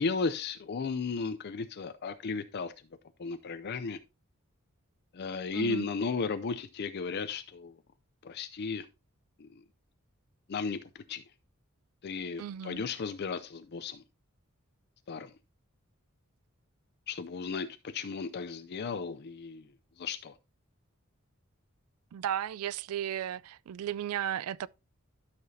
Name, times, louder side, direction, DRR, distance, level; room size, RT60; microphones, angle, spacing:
voice 1, 0.0-2.7 3.2-4.0 5.1-7.7 8.2-8.9 9.4-9.5 10.5-10.8 11.1-11.2 12.0-14.0 15.1-15.3 17.1-19.7 20.0-20.3, left 4 dB, 50° left, 0.5 m, -34 dB
voice 2, 5.5-5.9 12.4-12.8 22.1-24.7, right 10 dB, 85° right, 0.3 m, -35 dB
12.5 x 5.9 x 2.7 m
head